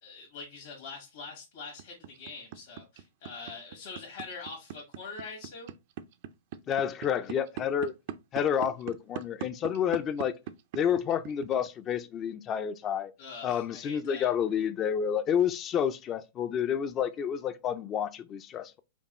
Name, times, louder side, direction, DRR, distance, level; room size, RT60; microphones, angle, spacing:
voice 1, 0.0-5.7 13.2-14.3, left 4 dB, 65° left, 1.6 m, -44 dB
sound 1, 1.8-11.9, right 10 dB, 55° right, 0.4 m, -39 dB
voice 2, 6.7-7.9 8.3-10.4 10.7-13.1 13.4-18.8, left 8 dB, 30° left, 0.4 m, -29 dB
5.2 x 2.3 x 3.0 m
hypercardioid pair, 120°, 0 cm